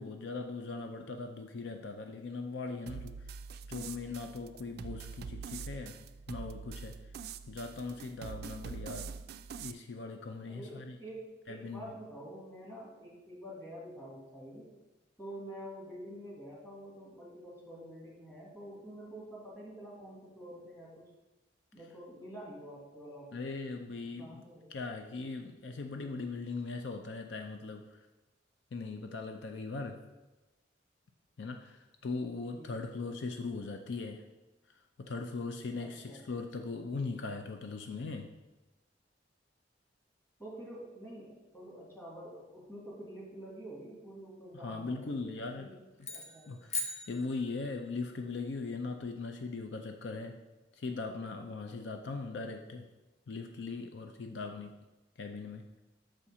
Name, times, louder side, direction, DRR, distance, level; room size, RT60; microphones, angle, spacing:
voice 1, 0.0-3.2 3.7-6.0 6.3-7.0 7.5-9.1 9.6-11.0 11.5-11.8 23.3-24.4 24.7-28.0 28.7-30.0 31.4-34.2 35.0-38.3 44.6-45.7 46.5-46.8 47.1-50.4 50.7-52.9 53.3-54.8 55.2-55.7, left 3 dB, 70° left, 5 dB, 0.5 m, -39 dB
sound 1, 2.9-9.7, right 5 dB, 60° right, 0.3 m, -44 dB
voice 2, 10.5-14.7 15.2-21.1 21.7-23.4 24.2-24.7 32.5-32.8 35.8-36.4 40.4-45.8 46.1-46.5, right 1 dB, 15° left, -5 dB, 2.1 m, -47 dB
sound 2, 46.0-47.9, left 2 dB, 40° left, 0.8 m, -40 dB
6.3 x 4.3 x 4.8 m, 1.1 s
head